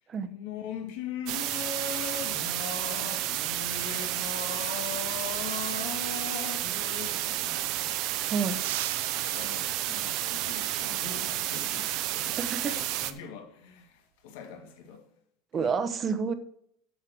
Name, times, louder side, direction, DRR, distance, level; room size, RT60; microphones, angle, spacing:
voice 1, 0.3-8.1 9.1-15.1 15.5-15.8, left 6 dB, 80° left, 1.9 m, -40 dB
sound 1, 1.3-13.1, right 14 dB, 55° right, 0.7 m, -31 dB
sound 2, 7.2-8.1 8.5-10.3 12.8-13.1 14.5-15.0, right 16 dB, 85° right, 0.4 m, -41 dB
voice 2, 8.3-8.6 12.4-12.8 15.5-16.3, right 5 dB, 25° right, 0.9 m, -29 dB
7.7 x 6.7 x 6.1 m
cardioid pair, 155°, 0 cm